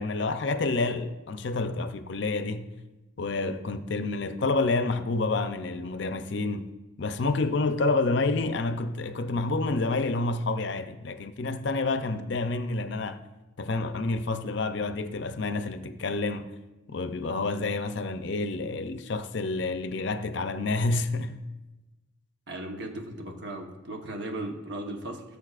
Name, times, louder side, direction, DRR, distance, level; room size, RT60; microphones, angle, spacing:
voice 1, 0.0-2.7 3.2-6.7 7.0-13.2 13.6-16.6 16.9-21.4, left 3 dB, 60° left, 0.5 m, -28 dB
voice 2, 22.5-25.4, right 1 dB, 55° right, 1.1 m, -37 dB
18.0 x 6.9 x 2.5 m
head